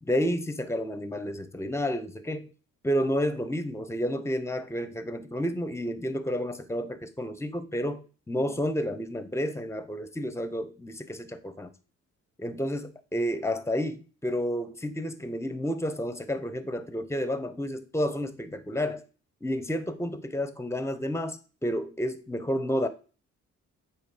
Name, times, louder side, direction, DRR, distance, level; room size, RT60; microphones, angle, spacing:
voice 1, 0.0-2.5 2.8-11.7 12.4-19.0 19.4-22.9, equal, 10° left, 0.8 m, -30 dB
7.8 x 3.2 x 4.9 m
cardioid pair, 90°, 30 cm